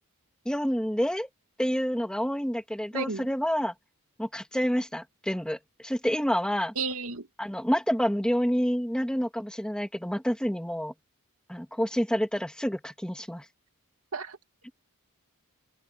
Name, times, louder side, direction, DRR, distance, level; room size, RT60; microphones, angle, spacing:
voice 1, 0.5-1.3 1.6-3.7 4.2-6.7 7.4-10.9 11.5-13.4, equal, 5° left, 2.1 m, -28 dB
voice 2, 2.9-3.3 6.8-7.3 14.1-14.4, right 4 dB, 75° right, 2.4 m, -32 dB
open air
head